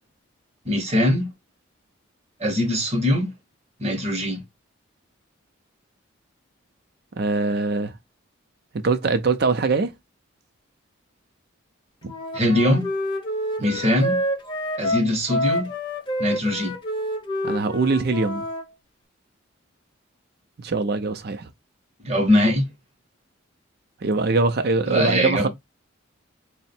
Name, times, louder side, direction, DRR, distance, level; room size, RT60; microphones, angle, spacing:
voice 1, 0.6-1.3 2.4-3.3 3.8-4.4 12.3-12.9 13.6-14.2 14.8-15.7 16.2-16.7 22.0-22.6 24.8-25.5, left 1 dB, 30° right, 0.9 m, -21 dB
voice 2, 7.2-7.9 8.7-9.9 12.0-12.1 13.6-13.8 17.4-18.5 20.6-21.5 24.0-25.5, right 3 dB, 50° right, 0.5 m, -22 dB
Wind instrument woodwind instrument, 12.0-18.6, equal, 25° left, 0.7 m, -28 dB
3.6 x 2.1 x 4.2 m
head